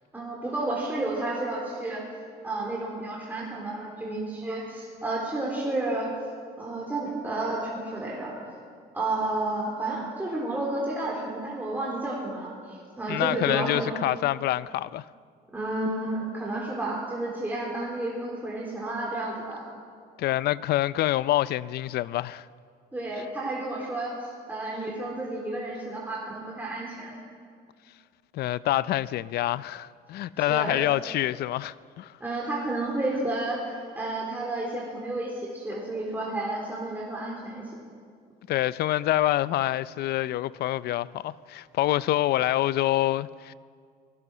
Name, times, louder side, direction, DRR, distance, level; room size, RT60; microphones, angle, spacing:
voice 1, 0.1-2.1 2.4-6.1 6.6-8.5 8.9-14.0 15.5-19.6 22.9-27.2 30.4-30.8 32.2-37.7, right 2 dB, 10° right, 3.9 m, -31 dB
voice 2, 13.1-15.1 20.2-22.5 28.3-32.1 38.5-43.5, left 14 dB, 70° left, 0.6 m, -26 dB
24.0 x 18.0 x 6.3 m
cardioid pair, 110°, 17 cm